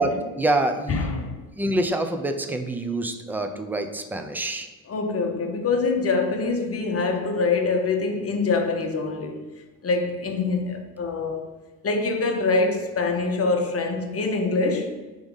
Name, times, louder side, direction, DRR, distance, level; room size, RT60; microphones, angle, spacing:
voice 1, 0.0-1.1 1.6-4.7, right 2 dB, 5° right, 0.6 m, -26 dB
voice 2, 0.9-1.3 4.9-9.4 9.8-11.5 11.8-14.9, left 3 dB, 30° left, 1.1 m, -24 dB
4.6 x 3.9 x 5.4 m
hypercardioid pair, 65°, 48 cm